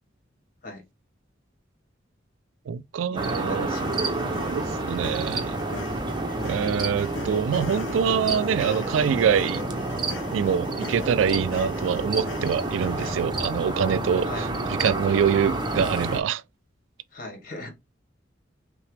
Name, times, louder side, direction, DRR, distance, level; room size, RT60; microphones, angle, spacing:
voice 1, 2.7-3.7 4.3-5.6 6.4-9.6 10.3-14.3 14.8-16.4, right 7 dB, 80° right, 0.3 m, -25 dB
voice 2, 3.2-4.4 14.2-14.5 17.1-17.7, left 2 dB, 45° left, 1.4 m, -39 dB
sound 1, 3.2-16.2, right 2 dB, 25° right, 0.6 m, -29 dB
sound 2, 3.7-13.2, left 4 dB, 80° left, 0.6 m, -41 dB
5.7 x 2.1 x 3.3 m
head